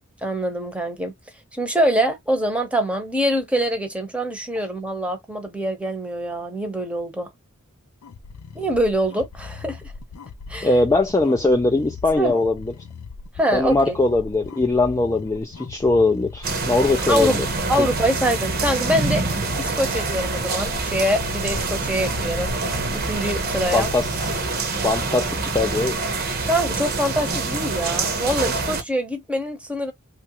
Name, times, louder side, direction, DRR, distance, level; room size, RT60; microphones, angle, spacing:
voice 1, 0.2-1.1 1.5-7.3 8.5-9.9 10.5-10.7 12.2-12.4 13.4-14.0 17.1-17.4 17.7-19.2 19.6-22.5 22.9-23.9 26.5-29.9, equal, 5° right, 0.8 m, -24 dB
sound 1, 8.0-24.4, left 5 dB, 80° left, 0.5 m, -39 dB
voice 2, 10.6-12.7 13.5-17.5 17.8-17.9 23.7-24.2 24.8-26.0, left 2 dB, 15° left, 0.3 m, -21 dB
sound 2, 16.4-28.8, right 3 dB, 45° right, 0.8 m, -26 dB
3.1 x 2.4 x 2.9 m
head